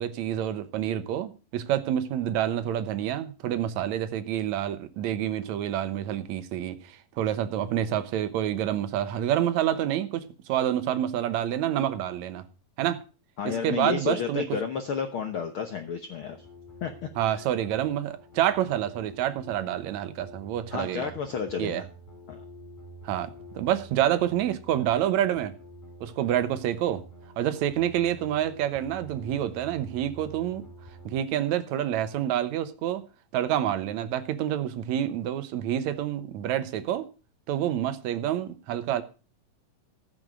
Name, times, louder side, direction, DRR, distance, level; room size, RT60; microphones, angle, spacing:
voice 1, 0.0-12.5 12.8-13.0 13.5-14.4 17.2-21.1 21.6-21.8 23.0-25.5 26.0-27.0 27.4-30.6 31.1-33.0 33.3-37.1 37.5-39.0, right 11 dB, 70° right, 1.9 m, -28 dB
voice 2, 13.4-16.4 16.8-17.4 20.7-21.8 22.3-22.4, left 6 dB, 80° left, 1.2 m, -31 dB
sound 1, 16.2-31.2, right 1 dB, 60° left, 7.8 m, -48 dB
15.0 x 6.6 x 6.2 m
omnidirectional pair, 4.0 m